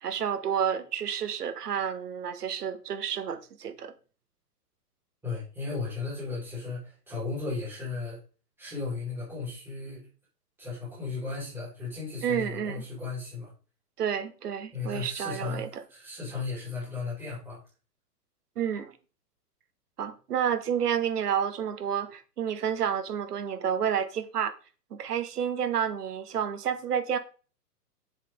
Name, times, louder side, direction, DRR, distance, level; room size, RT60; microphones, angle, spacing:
voice 1, 0.0-3.9 12.2-12.8 14.0-15.8 18.6-18.9 20.0-24.5 24.9-27.2, right 8 dB, 70° right, 1.6 m, -30 dB
voice 2, 5.2-8.2 8.6-10.1 10.6-13.5 14.7-17.6, left 4 dB, 5° right, 4.7 m, -35 dB
7.6 x 7.4 x 3.8 m
hypercardioid pair, 165°, 48 cm